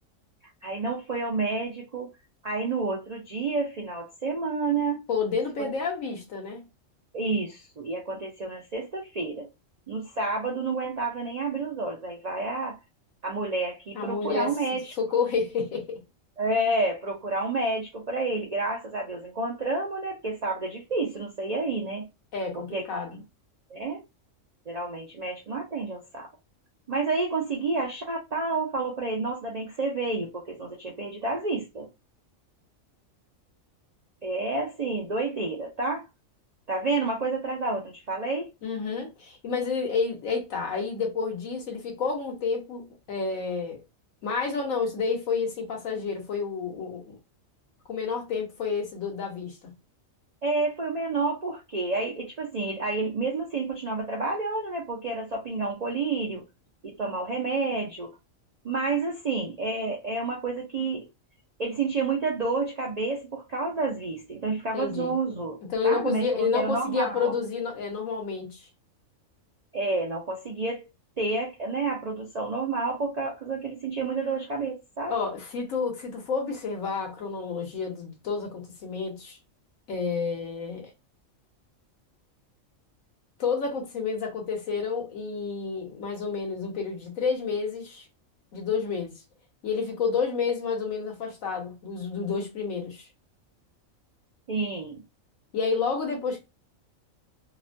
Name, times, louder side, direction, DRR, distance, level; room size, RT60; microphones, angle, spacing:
voice 1, 0.6-2.1 2.4-5.0 5.6-5.7 7.1-9.5 9.9-12.8 13.2-14.9 16.4-22.1 22.7-22.9 23.1-23.2 23.7-24.0 24.7-26.3 26.9-31.9 34.2-36.0 36.7-38.5 50.4-56.4 56.8-58.1 58.6-61.0 61.6-65.6 65.8-67.3 69.7-70.9 71.2-75.1 94.5-95.0, right 3 dB, 60° right, 0.4 m, -29 dB
voice 2, 5.1-6.7 13.9-16.0 22.3-23.2 38.6-43.8 44.2-47.2 47.9-49.7 64.7-65.1 65.7-68.6 75.1-79.4 79.9-80.9 83.4-88.0 88.5-89.2 89.6-93.1 95.5-96.4, left 5 dB, 75° left, 1.3 m, -30 dB
2.9 x 2.1 x 2.5 m
omnidirectional pair, 1.4 m